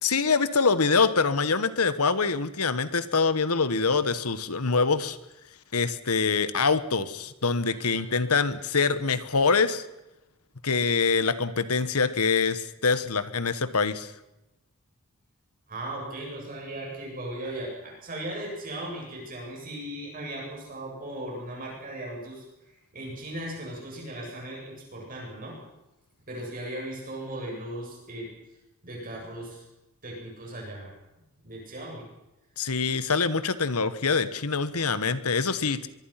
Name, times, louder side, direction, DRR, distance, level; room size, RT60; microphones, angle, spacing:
voice 1, 0.0-5.2 5.7-9.8 10.6-14.1 32.6-35.9, left 4 dB, 85° left, 13 dB, 1.4 m, -25 dB
voice 2, 7.6-8.3 15.7-25.6 26.3-28.3 28.8-29.6 30.0-30.9 31.4-32.1, right 1 dB, 40° right, -2 dB, 7.7 m, -37 dB
24.0 x 23.0 x 5.9 m, 0.95 s
head